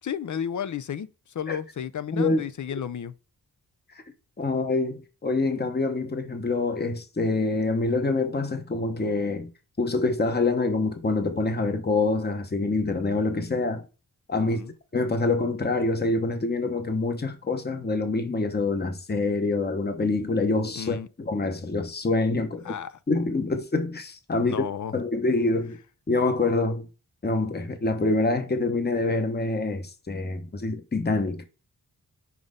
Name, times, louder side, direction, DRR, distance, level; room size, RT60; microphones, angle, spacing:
voice 1, 0.0-1.1 1.3-3.1 14.4-14.7 20.8-21.1 22.6-23.0 24.4-25.0, left 8 dB, 55° left, 0.5 m, -33 dB
voice 2, 2.1-2.4 4.4-9.5 9.8-13.8 14.3-14.6 14.9-22.7 23.1-24.7 24.9-25.8 26.1-26.9 27.2-31.4, left 3 dB, 30° left, 1.0 m, -26 dB
6.0 x 5.2 x 3.6 m
wide cardioid pair, 115°, 35 cm